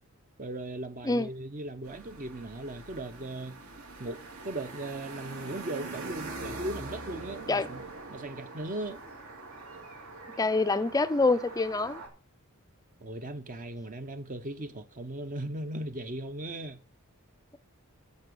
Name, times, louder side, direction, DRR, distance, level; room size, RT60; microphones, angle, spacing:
voice 1, 0.4-3.6 4.0-7.8 8.1-9.0 13.0-16.8, right 1 dB, 35° right, 0.8 m, -38 dB
sound 1, 1.8-12.1, right 3 dB, 70° right, 2.7 m, -43 dB
voice 2, 10.4-12.0, left 3 dB, 15° left, 0.4 m, -26 dB
8.6 x 6.8 x 6.3 m
head